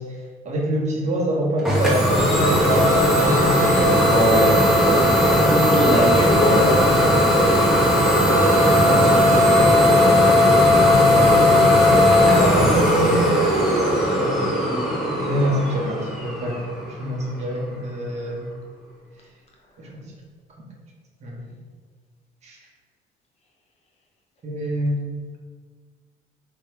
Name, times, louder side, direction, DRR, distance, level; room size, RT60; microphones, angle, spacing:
voice 1, 0.0-4.6 6.5-7.2 8.8-13.3 14.2-18.5 19.8-20.1 20.6-20.7 21.2-21.5 22.4-22.7 24.4-25.0, equal, 40° right, -2 dB, 1.2 m, -27 dB
Idling / Domestic sounds home sounds, 1.6-17.2, left 1 dB, ahead, 1.1 m, -17 dB
voice 2, 4.0-4.5 4.8-6.9 8.6-9.9, left 1 dB, 40° left, -1 dB, 1.1 m, -24 dB
3.6 x 3.1 x 4.6 m, 1.5 s
cardioid pair, 110°, 17 cm